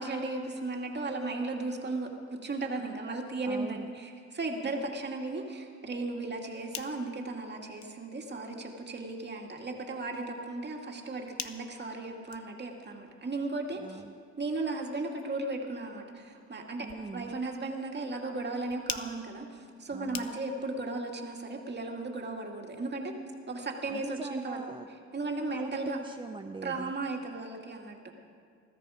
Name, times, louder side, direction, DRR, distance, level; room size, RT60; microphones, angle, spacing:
voice 1, 0.0-14.0 14.4-16.9 17.1-23.1 23.5-24.6 25.1-26.0 26.6-28.1, right 2 dB, 35° right, 1 dB, 2.3 m, -36 dB
voice 2, 3.4-3.9 4.6-4.9 13.8-14.1 16.8-17.4 19.9-20.3 23.9-24.9 25.5-26.9, right 4 dB, 15° right, 7 dB, 0.5 m, -42 dB
sound 1, 6.3-20.8, left 9 dB, 65° left, 0.9 m, -48 dB
21.0 x 13.5 x 5.0 m, 2.2 s
cardioid pair, 90°, 30 cm